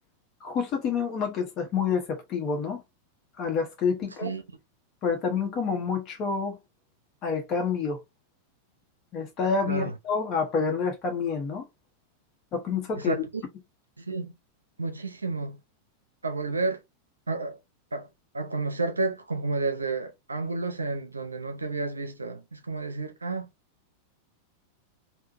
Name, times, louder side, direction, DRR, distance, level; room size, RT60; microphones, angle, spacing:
voice 1, 0.4-2.8 3.4-4.3 5.0-6.6 7.2-8.0 9.1-11.6 12.5-13.1, left 5 dB, 35° left, 1.0 m, -28 dB
voice 2, 13.0-13.4 14.0-14.3 14.8-15.6 16.2-16.8 17.3-17.6 17.9-18.1 18.3-23.5, right 3 dB, 80° right, 0.5 m, -31 dB
3.5 x 2.2 x 2.6 m
figure-of-eight pair, 90°, 0 cm